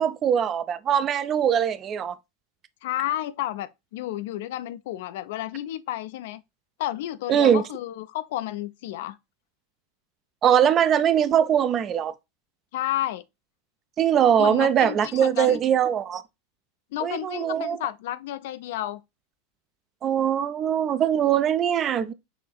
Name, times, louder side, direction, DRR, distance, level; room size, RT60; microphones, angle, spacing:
voice 1, 0.0-2.1 7.3-7.6 10.4-12.1 14.0-16.2 17.0-17.8 20.0-22.1, right 9 dB, 30° right, 0.4 m, -21 dB
voice 2, 2.8-6.4 6.8-9.2 12.7-13.2 14.4-15.6 16.9-19.0, left 14 dB, 60° left, 0.4 m, -31 dB
5.6 x 3.3 x 2.2 m
figure-of-eight pair, 85°, 0 cm